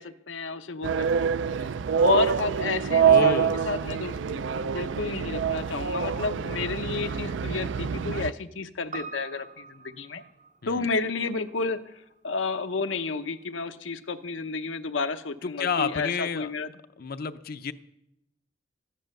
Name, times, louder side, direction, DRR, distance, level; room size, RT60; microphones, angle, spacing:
voice 1, 0.0-1.3 2.0-10.2 10.7-16.7, left 4 dB, 85° left, 9 dB, 0.8 m, -31 dB
sound 1, 0.8-8.3, right 7 dB, 75° right, 0.4 m, -25 dB
voice 2, 3.0-3.7 10.6-10.8 15.4-16.5 17.0-17.7, left 5 dB, 55° left, 10 dB, 0.6 m, -30 dB
Piano, 8.9-13.4 13.7-13.8, right 5 dB, 40° right, 0.7 m, -46 dB
14.0 x 10.5 x 6.5 m, 0.83 s
head